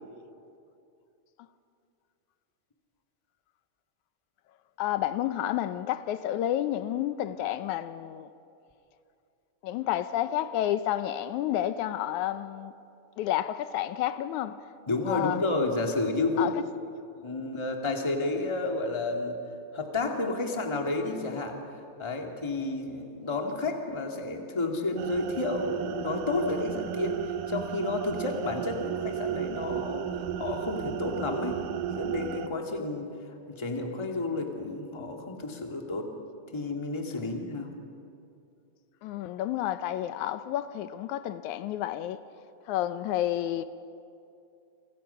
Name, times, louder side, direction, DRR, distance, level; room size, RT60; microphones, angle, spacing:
voice 1, 4.8-8.3 9.6-12.7 13.2-14.6 15.1-15.4 16.4-16.6 39.0-42.2 42.7-43.6, left 12 dB, 80° left, 2.1 m, -30 dB
voice 2, 14.9-16.5 17.2-19.4 19.7-21.6 22.0-27.2 27.5-30.1 30.4-33.1 33.5-36.1 36.5-37.7, left 3 dB, 10° left, 1.6 m, -31 dB
sound 1, 25.0-32.5, right 10 dB, 85° right, 2.4 m, -34 dB
28.5 x 25.0 x 5.7 m
omnidirectional pair, 3.5 m